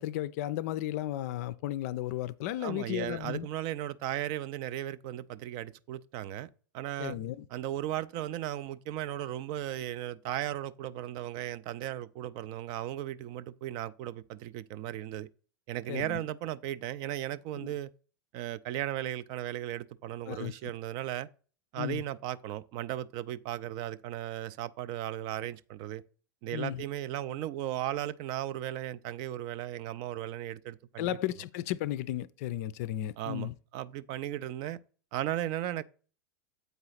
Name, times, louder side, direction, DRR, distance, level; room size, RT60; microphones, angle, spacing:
voice 1, 0.0-3.5 7.0-7.5 15.9-16.2 17.6-17.7 20.3-20.5 21.8-22.0 26.5-26.8 31.0-33.5, left 13 dB, 45° left, 0.4 m, -34 dB
voice 2, 2.6-7.2 7.5-15.3 15.7-17.9 18.3-21.3 21.7-26.0 26.4-31.2 33.2-34.8 35.1-35.8, right 13 dB, 40° right, 0.4 m, -36 dB
8.1 x 4.7 x 3.9 m
figure-of-eight pair, 90°, 11 cm